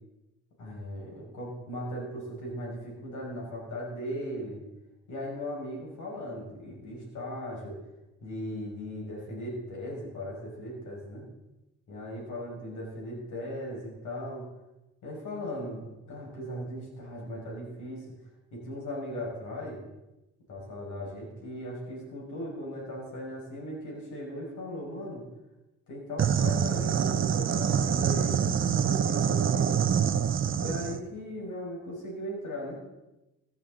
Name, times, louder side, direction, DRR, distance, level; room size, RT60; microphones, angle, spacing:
voice 1, 0.6-4.6 5.1-7.8 8.2-11.2 11.9-14.5 15.0-18.1 18.5-19.8 20.5-25.2 25.9-29.8 30.6-32.8, equal, 75° left, -2 dB, 5.7 m, -38 dB
sound 1, 26.2-31.0, right 8 dB, 45° right, 0.8 m, -26 dB
14.5 x 12.5 x 3.9 m, 1.0 s
cardioid pair, 90°, 30 cm